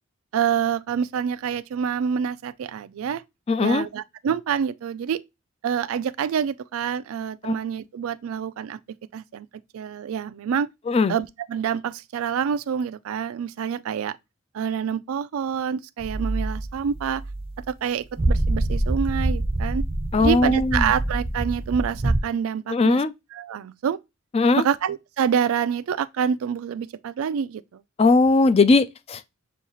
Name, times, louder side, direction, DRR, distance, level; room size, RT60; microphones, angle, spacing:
voice 1, 0.3-3.2 3.6-5.2 5.6-8.8 9.1-9.5 9.7-10.7 11.1-14.2 14.5-17.2 17.7-19.9 20.2-23.0 23.3-24.0 24.6-27.8, right 7 dB, 80° right, 0.3 m, -27 dB
voice 2, 3.5-3.9 7.4-7.5 10.9-11.1 20.1-20.9 22.7-23.1 24.3-24.6 28.0-29.2, left 3 dB, 30° left, 0.3 m, -19 dB
sound 1, 16.0-17.7 18.2-22.2, right 2 dB, 25° right, 0.5 m, -25 dB
6.9 x 2.4 x 3.0 m
head